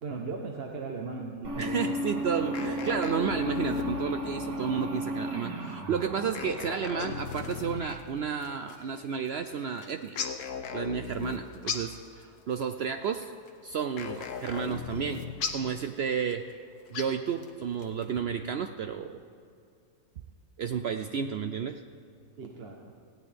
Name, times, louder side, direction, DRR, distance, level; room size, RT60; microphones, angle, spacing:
voice 1, 0.0-1.9 22.4-22.9, right 4 dB, 45° right, 1 dB, 1.0 m, -37 dB
sound 1, 1.4-7.8, equal, 90° right, 2.2 m, -34 dB
voice 2, 1.6-10.2 10.7-13.3 13.6-15.3 15.5-16.5 16.9-19.2 20.6-21.8, right 7 dB, 75° right, 8 dB, 0.6 m, -32 dB
sound 2, 2.5-4.3 6.4-8.0 10.2-11.7 14.0-15.6, left 6 dB, 60° left, 1.1 m, -38 dB
sound 3, 7.0-18.2, left 6 dB, 85° left, 1.6 m, -42 dB
18.0 x 16.0 x 3.4 m, 2.4 s
omnidirectional pair, 1.6 m